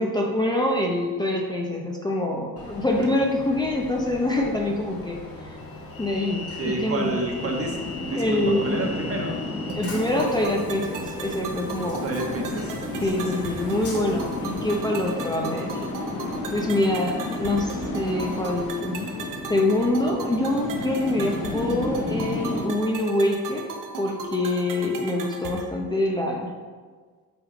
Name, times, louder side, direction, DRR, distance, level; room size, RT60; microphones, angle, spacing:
voice 1, 0.0-5.6 6.0-7.1 8.2-8.9 9.7-12.1 13.0-15.8 16.5-19.1 19.5-23.7 24.0-26.5, left 1 dB, 10° left, -1 dB, 0.7 m, -25 dB
Train, 2.6-18.7, left 2 dB, 40° left, 1.3 m, -39 dB
voice 2, 6.6-9.4 12.0-13.4, right 2 dB, 40° right, 1 dB, 1.3 m, -30 dB
sound 1, 7.4-22.7, left 3 dB, 60° left, 1.0 m, -33 dB
sound 2, 9.7-25.7, right 4 dB, 60° right, 1.0 m, -37 dB
8.2 x 3.4 x 4.9 m, 1.5 s
cardioid pair, 110°, 36 cm